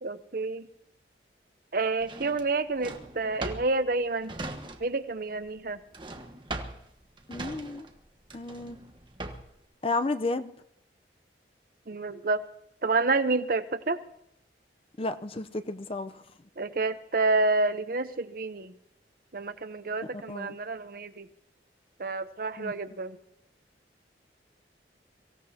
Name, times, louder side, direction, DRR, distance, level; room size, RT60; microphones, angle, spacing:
voice 1, 0.0-0.7 1.7-4.3 4.8-5.8 11.9-12.4 12.8-14.0 16.6-18.7 19.3-21.3 22.0-23.2, right 3 dB, 55° right, 11 dB, 0.8 m, -29 dB
Drawer open or close, 2.0-5.1 5.4-9.6, right 2 dB, 30° right, 1.4 m, -40 dB
voice 2, 7.3-7.9 8.3-8.8 9.8-10.5 15.0-16.2 20.1-20.5 22.6-22.7, left 2 dB, 30° left, 10 dB, 0.7 m, -32 dB
24.5 x 16.0 x 2.9 m, 0.79 s
head